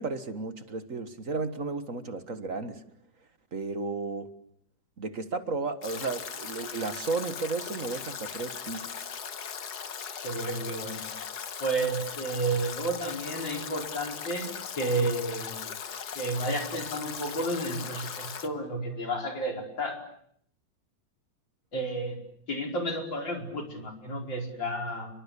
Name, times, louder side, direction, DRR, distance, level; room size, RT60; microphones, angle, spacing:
voice 1, 0.0-2.8 3.5-4.3 5.0-9.0, right 3 dB, 45° right, 10 dB, 2.0 m, -33 dB
Stream / Drip / Trickle dribble, 5.8-18.5, left 7 dB, 60° left, 1.9 m, -39 dB
voice 2, 10.2-11.0 11.6-14.5 14.8-15.7 16.2-20.0 21.7-22.2 22.5-25.1, right 2 dB, 90° left, 3 dB, 5.6 m, -31 dB
29.5 x 23.0 x 8.4 m, 0.67 s
omnidirectional pair, 1.9 m